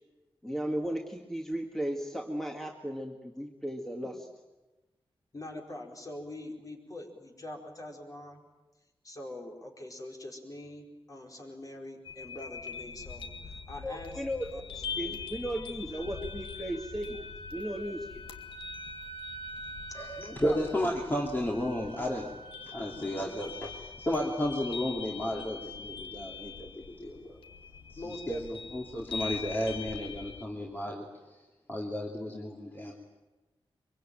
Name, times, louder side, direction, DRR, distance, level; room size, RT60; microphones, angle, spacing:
voice 1, 0.4-4.1 13.8-17.2 17.5-18.1, equal, 5° left, 1 dB, 2.0 m, -35 dB
voice 2, 5.3-8.4 9.0-14.2 14.5-15.2 17.1-17.2 19.9-21.0 25.4-25.6 26.0-26.1 28.0-28.7 32.3-32.5, left 1 dB, 40° left, 1 dB, 4.8 m, -44 dB
sound 1, 12.0-30.4, left 5 dB, 65° left, 2.1 m, -43 dB
Wind instrument woodwind instrument, 15.5-23.3, right 2 dB, 85° left, 3.2 m, -47 dB
voice 3, 19.9-22.3 22.6-27.4 27.9-28.4 28.7-31.1 31.7-32.9, left 1 dB, 20° left, -2 dB, 2.9 m, -33 dB
24.5 x 23.5 x 9.1 m, 1.1 s
wide cardioid pair, 125°, 10 cm